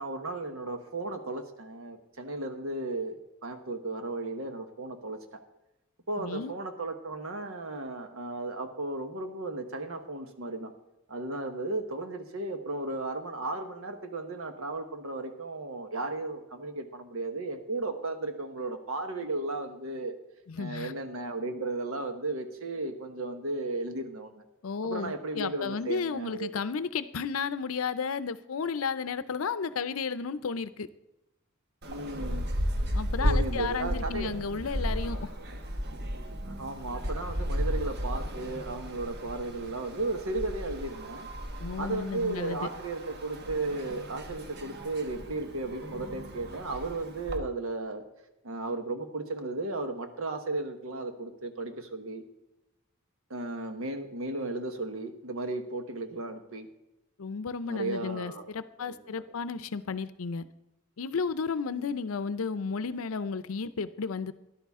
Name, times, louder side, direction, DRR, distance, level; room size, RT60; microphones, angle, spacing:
voice 1, 0.0-5.2 6.1-10.7 11.1-20.1 20.6-24.4 24.8-26.5 31.9-32.5 33.2-34.3 36.5-41.3 41.8-48.0 48.4-52.2 53.3-56.7 57.6-58.5 58.8-59.2 59.6-59.7 61.7-61.9, right 2 dB, 80° right, 7 dB, 1.2 m, -35 dB
voice 2, 6.2-6.5 20.5-20.9 24.6-30.9 32.9-35.3 41.6-42.7 57.2-60.5 61.0-64.3, left 5 dB, 80° left, 14 dB, 0.6 m, -33 dB
sound 1, 31.8-47.4, equal, 50° right, 1.1 m, -34 dB
12.5 x 11.0 x 3.6 m, 0.94 s
head